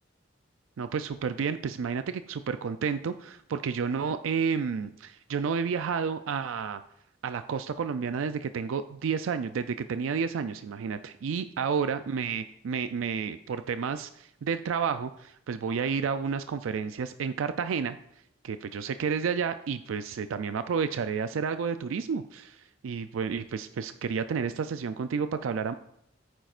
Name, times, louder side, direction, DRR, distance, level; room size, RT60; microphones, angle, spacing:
voice 1, 0.8-6.8 7.2-18.0 18.4-25.7, right 6 dB, 85° right, 10 dB, 0.4 m, -31 dB
14.5 x 9.1 x 2.5 m, 0.75 s
head